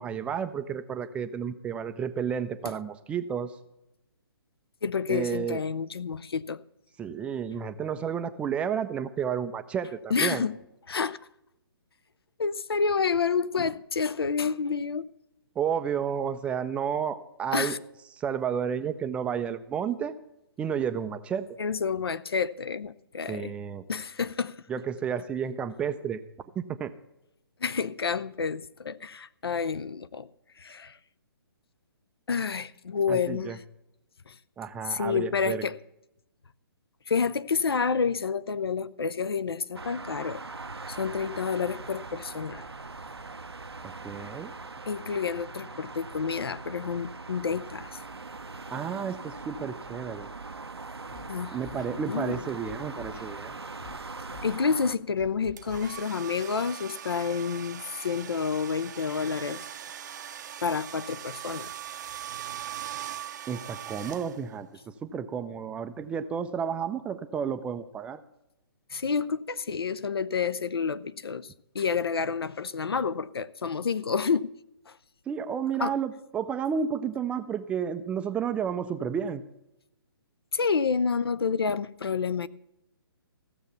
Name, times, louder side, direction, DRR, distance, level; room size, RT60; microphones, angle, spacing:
voice 1, 0.0-3.5 5.1-5.6 7.0-10.4 15.6-17.7 18.1-20.1 20.6-21.5 23.3-23.9 24.7-26.2 26.6-26.9 33.1-33.6 34.6-35.6 43.8-44.5 48.7-50.3 51.5-53.6 63.5-68.2 75.3-79.4, right 7 dB, 10° right, 0.4 m, -31 dB
voice 2, 4.8-6.6 10.1-10.5 10.9-11.2 12.4-15.1 17.5-17.8 21.6-23.5 23.9-24.6 27.6-30.3 30.6-31.0 32.3-33.6 34.3-34.4 34.8-35.8 37.1-40.4 40.9-42.6 44.9-48.0 51.3-52.4 54.4-59.7 60.6-61.7 68.9-74.5 74.9-75.0 75.8-75.9 80.5-82.5, left 5 dB, 70° left, 0.6 m, -29 dB
sound 1, 39.7-55.0, right 3 dB, 85° right, 0.7 m, -41 dB
Scratching (performance technique), 51.1-51.3 51.6-52.0 52.3-53.3 53.8-54.0 54.3-54.6 55.2-56.0, left 5 dB, 50° left, 1.9 m, -46 dB
sound 2, 55.6-64.7, right 10 dB, 45° right, 0.6 m, -40 dB
15.5 x 6.9 x 6.8 m
figure-of-eight pair, 135°, 13 cm